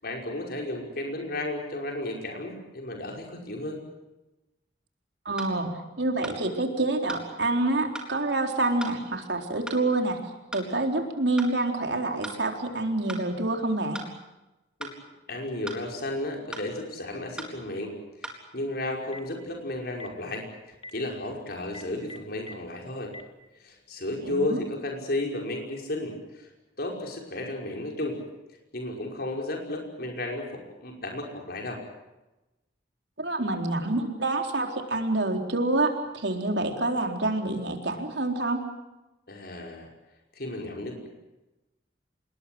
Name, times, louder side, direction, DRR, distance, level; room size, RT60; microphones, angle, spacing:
voice 1, 0.0-3.8 14.8-14.9 15.3-17.9 18.2-23.1 23.6-26.5 26.8-28.2 28.7-31.8 39.3-39.9 40.3-41.1, left 1 dB, 60° left, 1 dB, 5.6 m, -33 dB
voice 2, 5.3-5.7 6.0-10.2 10.5-14.0 24.2-24.6 33.2-38.6, right 2 dB, 70° right, 3 dB, 4.1 m, -27 dB
sound 1, 5.4-5.5 6.2-6.4 7.1-7.3 8.0-8.1 8.8-9.0 9.7-9.8 10.5-10.7 11.4-11.5 12.2-12.4 13.1-13.3 13.9-14.1 14.8-15.0 15.7-15.8 16.5-16.7 17.4-17.5 18.2-18.4, right 1 dB, 5° right, 4.1 m, -38 dB
Telephone, 18.9-19.3 19.9-20.1 20.7-20.9 21.6-22.5 23.0-23.2, left 2 dB, 30° left, 2.0 m, -42 dB
27.5 x 21.0 x 7.9 m, 1.0 s
head